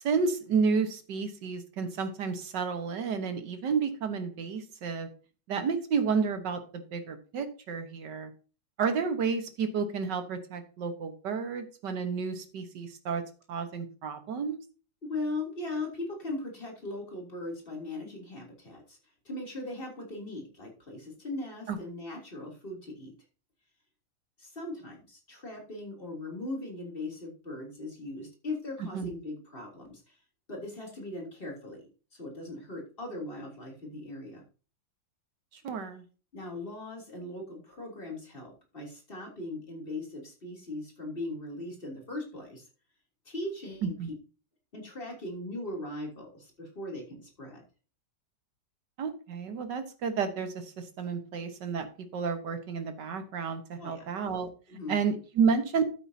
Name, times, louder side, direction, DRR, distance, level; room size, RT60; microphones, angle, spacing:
voice 1, 0.0-5.1 5.5-8.3 8.8-13.2 13.5-14.6 21.7-21.8 28.8-29.1 35.6-36.0 43.8-44.1 49.0-54.5 54.9-55.8, right 5 dB, 65° right, 8 dB, 1.9 m, -31 dB
voice 2, 15.0-19.0 19.2-23.1 24.4-30.2 30.5-34.4 36.3-42.6 43.2-43.9 44.7-47.6 53.8-54.1 54.7-55.0, left 2 dB, 30° left, -1 dB, 3.4 m, -39 dB
12.5 x 8.9 x 2.8 m, 0.36 s
omnidirectional pair, 2.0 m